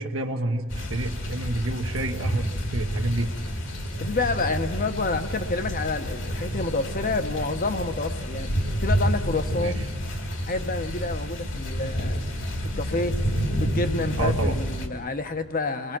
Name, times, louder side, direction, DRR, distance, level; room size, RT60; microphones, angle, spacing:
voice 1, 0.0-3.3 9.6-9.7 14.2-14.5, right 2 dB, 70° right, 3 dB, 1.1 m, -29 dB
sound 1, 0.7-14.9, equal, 65° left, 2.1 m, -29 dB
voice 2, 4.0-8.5 8.8-9.8 10.4-12.2 12.6-13.2 13.5-16.0, left 3 dB, 45° left, 8 dB, 1.0 m, -28 dB
28.5 x 20.5 x 6.1 m, 1.5 s
head